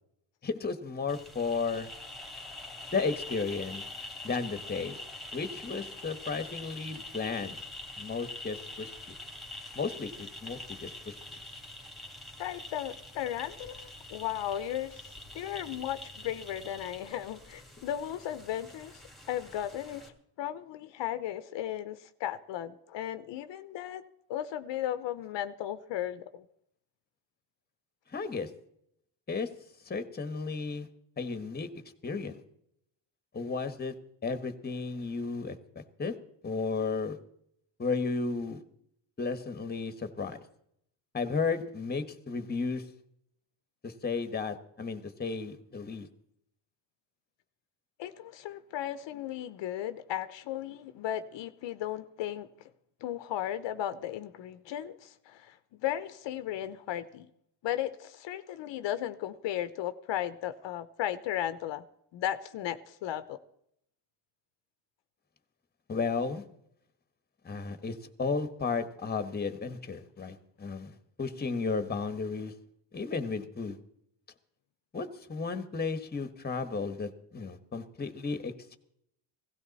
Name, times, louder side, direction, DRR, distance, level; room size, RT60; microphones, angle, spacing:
voice 1, 0.4-1.9 2.9-3.8 4.2-5.0 5.3-7.6 8.0-8.9 9.7-11.1 28.1-28.5 29.3-29.5 29.8-30.9 31.2-31.7 32.0-32.4 33.3-33.9 34.2-36.2 36.4-37.2 37.8-38.6 39.2-40.4 41.1-42.8 43.8-46.1 65.9-66.4 67.4-72.5 72.9-73.8 74.9-78.8, left 4 dB, 20° left, 10 dB, 1.3 m, -34 dB
sound 1, 1.1-20.1, left 2 dB, ahead, 2.1 m, -45 dB
voice 2, 12.4-19.0 19.3-24.0 24.3-26.4 48.0-52.7 53.0-57.3 57.6-61.8 62.1-63.4, left 11 dB, 70° left, 12 dB, 0.9 m, -36 dB
17.0 x 15.5 x 4.1 m, 0.73 s
cardioid pair, 125°, 46 cm